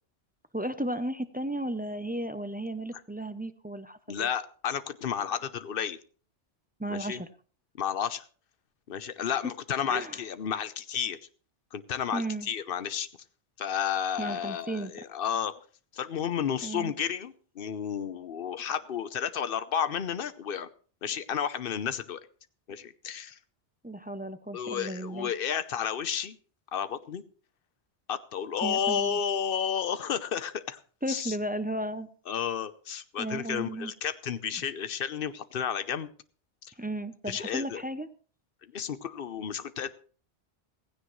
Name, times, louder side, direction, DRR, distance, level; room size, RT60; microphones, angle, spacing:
voice 1, 0.5-4.3 6.8-7.3 9.9-10.2 12.1-12.5 14.2-14.9 16.6-16.9 23.8-25.3 28.6-29.2 31.0-32.1 33.2-33.9 36.8-38.1, right 1 dB, 15° right, 11 dB, 0.4 m, -34 dB
voice 2, 4.1-6.0 6.9-7.2 7.7-8.3 8.9-11.2 11.7-13.1 13.6-15.5 15.9-20.7 21.0-22.2 22.7-23.4 24.5-26.4 26.7-27.2 28.1-30.8 31.1-31.4 32.3-36.1 36.6-36.7 37.3-37.8 38.6-39.9, left 8 dB, 55° left, 13 dB, 0.9 m, -32 dB
16.0 x 15.5 x 3.1 m, 0.41 s
omnidirectional pair, 1.2 m